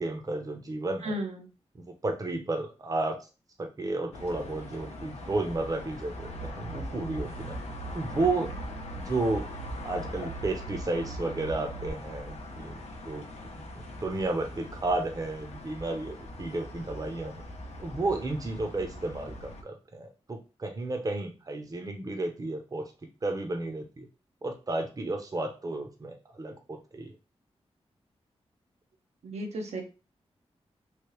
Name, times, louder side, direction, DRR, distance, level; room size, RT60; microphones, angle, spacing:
voice 1, 0.0-1.1 1.8-3.2 3.6-7.6 7.9-8.5 9.0-9.5 9.8-12.8 13.0-13.3 13.5-17.4 17.8-22.8 23.2-24.1 24.4-27.1, right 2 dB, 35° right, 4 dB, 0.7 m, -32 dB
voice 2, 1.0-1.5 29.2-29.8, right 1 dB, 85° right, 2 dB, 0.8 m, -34 dB
sound 1, 4.1-19.6, left 2 dB, 80° left, 0.7 m, -42 dB
sound 2, 6.1-11.9, right 4 dB, 45° left, 0.5 m, -42 dB
3.2 x 2.7 x 3.1 m, 0.32 s
wide cardioid pair, 90°, 11 cm